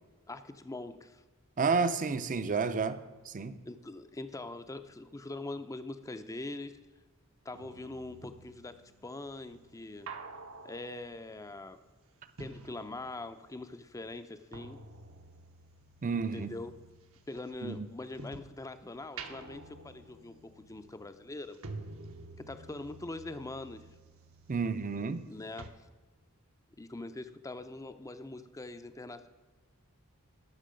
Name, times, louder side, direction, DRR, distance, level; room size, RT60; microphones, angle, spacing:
voice 1, 0.3-1.2 3.7-6.8 7.4-10.1 10.6-11.8 12.4-14.8 16.3-16.7 17.3-21.6 22.4-23.9 25.3-25.9 26.8-29.3, left 2 dB, 15° left, 10 dB, 0.5 m, -43 dB
voice 2, 1.6-3.6 16.0-16.5 17.6-17.9 24.5-25.2, right 4 dB, 35° right, 12 dB, 0.5 m, -31 dB
sound 1, 7.5-13.5 13.8-18.6 19.0-25.3 25.6-25.7, right 3 dB, 65° right, 0.9 m, -50 dB
13.0 x 6.0 x 5.1 m, 1.3 s
head